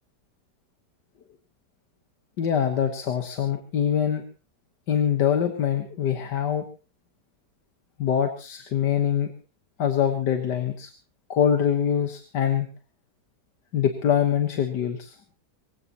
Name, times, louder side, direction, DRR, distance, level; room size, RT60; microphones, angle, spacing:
voice 1, 2.4-4.2 4.9-6.6 8.0-9.3 9.8-10.9 11.3-12.7 13.7-15.1, left 8 dB, 90° left, 6 dB, 2.0 m, -24 dB
24.5 x 15.5 x 3.0 m, 0.34 s
omnidirectional pair, 1.8 m